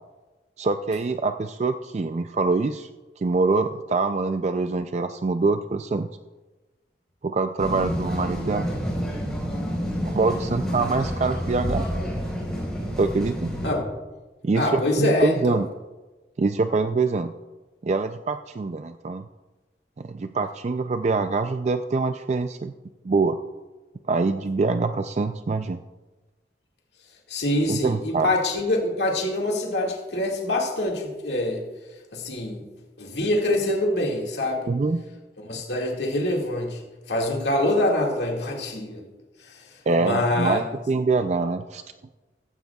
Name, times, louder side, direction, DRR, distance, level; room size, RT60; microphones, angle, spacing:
voice 1, 0.6-2.9 3.2-6.1 7.2-8.7 10.0-11.8 13.0-13.5 14.4-15.7 16.4-17.3 17.8-19.2 20.0-22.7 23.0-23.4 24.1-25.8 27.7-28.3 34.7-35.0 39.9-41.8, right 3 dB, 40° right, 8 dB, 0.3 m, -24 dB
sound 1, 7.6-13.7, equal, 5° left, 4.2 m, -29 dB
voice 2, 14.5-15.6 27.3-31.6 32.1-32.7 33.0-34.7 35.4-36.8 37.1-39.0 39.4-40.6, left 1 dB, 75° left, 0 dB, 2.0 m, -25 dB
15.0 x 14.5 x 2.3 m, 1.2 s
head